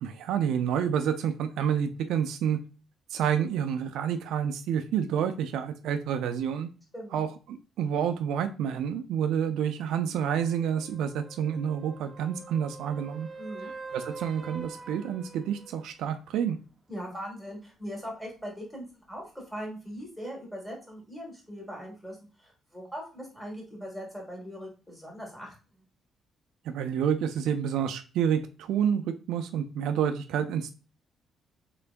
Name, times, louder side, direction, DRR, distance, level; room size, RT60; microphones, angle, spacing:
voice 1, 0.0-2.6 3.1-6.7 7.1-13.3 13.6-16.6 26.7-30.7, right 8 dB, 85° right, 9 dB, 0.4 m, -29 dB
sound 1, 10.2-15.9 20.0-20.1, right 4 dB, 25° right, 0.6 m, -45 dB
voice 2, 13.4-13.7 16.9-25.8, equal, 5° left, -1 dB, 1.9 m, -40 dB
3.7 x 3.4 x 2.4 m, 0.34 s
cardioid pair, 90°, 0 cm